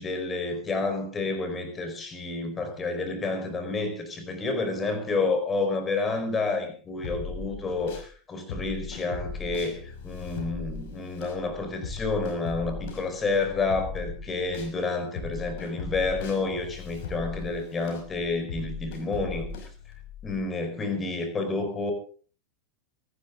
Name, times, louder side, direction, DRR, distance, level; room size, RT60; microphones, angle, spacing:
voice 1, 0.0-19.5 20.2-21.9, left 3 dB, 20° left, 6 dB, 4.7 m, -29 dB
sound 1, 7.0-8.1 8.5-14.7 15.2-20.4, left 5 dB, 50° left, 5.5 m, -38 dB
24.0 x 11.5 x 3.9 m, 0.40 s
figure-of-eight pair, 90°, 0 cm